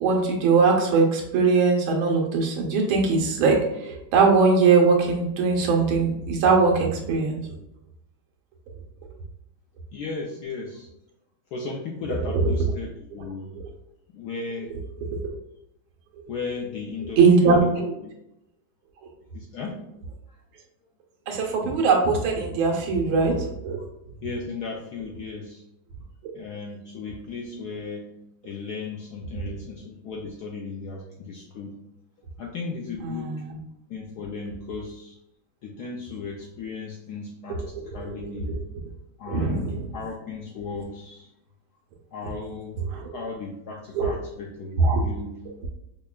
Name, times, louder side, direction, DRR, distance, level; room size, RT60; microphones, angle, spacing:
voice 1, 0.0-7.4 12.3-12.5 13.6-13.7 15.2-15.3 17.2-18.0 21.3-23.8 33.0-33.6 37.5-38.1 38.5-38.6 39.3-39.9 42.9-43.1 43.9-44.2 44.8-45.0, right 4 dB, 90° right, 1 dB, 1.6 m, -21 dB
voice 2, 9.9-10.9 11.5-13.5 14.1-14.7 16.3-18.1 19.3-19.8 24.2-25.6 26.3-28.1 28.4-31.8 32.4-33.3 33.9-35.2 35.6-38.6 39.2-41.3 42.1-42.8 43.1-45.4, left 4 dB, 80° left, -1 dB, 0.9 m, -36 dB
5.3 x 2.2 x 2.3 m, 0.82 s
omnidirectional pair, 2.2 m